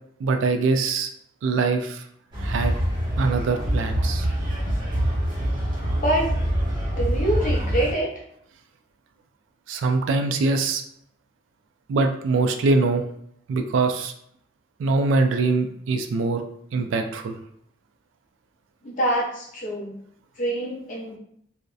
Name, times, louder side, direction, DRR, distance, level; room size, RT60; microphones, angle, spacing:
voice 1, 0.2-1.1 1.4-2.0 2.4-2.8 3.2-4.3 9.7-10.8 11.9-13.0 13.5-14.1 14.8-16.4 16.7-17.4, right 3 dB, 75° right, 6 dB, 0.3 m, -23 dB
sound 1, 2.3-7.9, equal, 25° right, 0.6 m, -25 dB
voice 2, 5.9-6.3 7.0-8.1 18.8-20.0 20.4-21.2, right 1 dB, 40° left, -3 dB, 0.5 m, -25 dB
2.6 x 2.0 x 2.3 m, 0.69 s
head